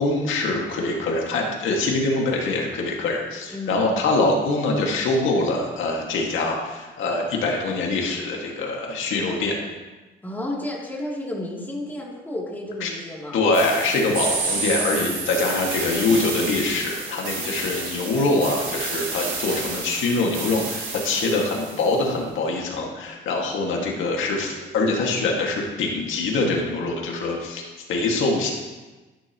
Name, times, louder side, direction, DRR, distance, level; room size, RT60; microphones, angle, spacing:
voice 1, 0.0-9.6 12.8-12.9 13.3-27.6 27.9-28.5, left 2 dB, 80° left, 0 dB, 2.0 m, -24 dB
voice 2, 3.5-3.8 10.2-13.4, left 1 dB, 10° left, -3 dB, 2.9 m, -32 dB
sound 1, 13.5-22.0, right 4 dB, 80° right, 3.4 m, -30 dB
11.5 x 11.0 x 3.0 m, 1.2 s
cardioid pair, 90°, 20 cm